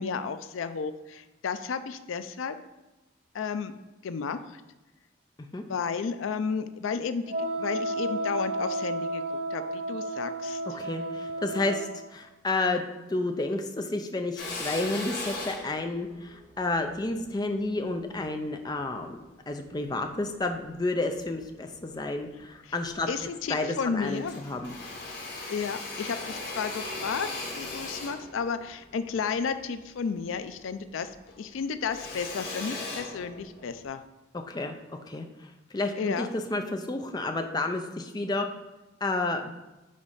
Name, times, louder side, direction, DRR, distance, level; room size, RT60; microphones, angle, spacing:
voice 1, 0.0-2.6 3.3-3.8 4.0-4.6 5.7-9.2 9.5-10.6 22.7-22.8 23.1-24.3 25.5-27.3 27.5-31.1 31.4-34.0 36.0-36.3, left 5 dB, 85° left, 11 dB, 0.4 m, -32 dB
Wind instrument woodwind instrument, 7.3-12.0, right 1 dB, 70° right, 1.8 m, -32 dB
voice 2, 10.7-12.8 13.1-19.2 19.5-23.1 23.5-24.8 34.3-34.8 35.1-35.3 35.7-38.5 39.0-39.5, left 2 dB, 20° left, 5 dB, 0.5 m, -31 dB
Drill, 14.4-18.9 19.5-20.6 21.1-22.0 22.4-22.5 22.8-23.8 24.0-30.7 31.0-33.8, left 2 dB, 55° left, 1.3 m, -39 dB
5.0 x 4.1 x 5.5 m, 1.1 s
head